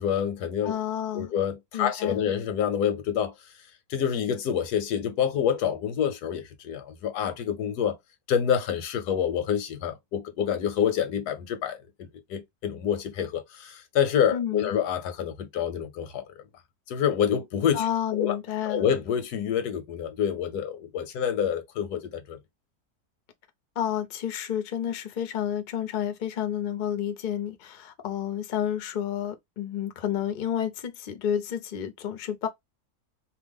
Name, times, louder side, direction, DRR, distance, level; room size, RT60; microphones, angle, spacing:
voice 1, 0.0-0.8 1.1-3.3 3.9-8.0 8.3-16.3 16.9-18.4 18.6-22.4, left 8 dB, 90° left, 1.3 m, -27 dB
voice 2, 0.6-1.3 1.7-2.3 14.3-14.7 17.7-18.9 23.8-32.5, left 10 dB, 60° left, 0.5 m, -30 dB
2.9 x 2.2 x 3.4 m
omnidirectional pair, 1.6 m